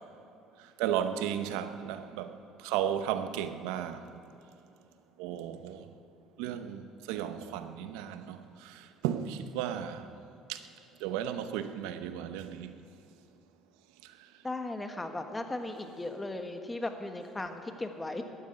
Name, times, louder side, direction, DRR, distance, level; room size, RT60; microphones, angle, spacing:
voice 1, 0.8-4.1 5.2-5.9 6.4-10.1 10.5-10.6 11.0-12.8, right 10 dB, 90° right, 0.8 m, -34 dB
voice 2, 14.4-18.2, left 2 dB, 15° left, 1.4 m, -37 dB
13.5 x 9.5 x 9.1 m
supercardioid pair, 95°, 0 cm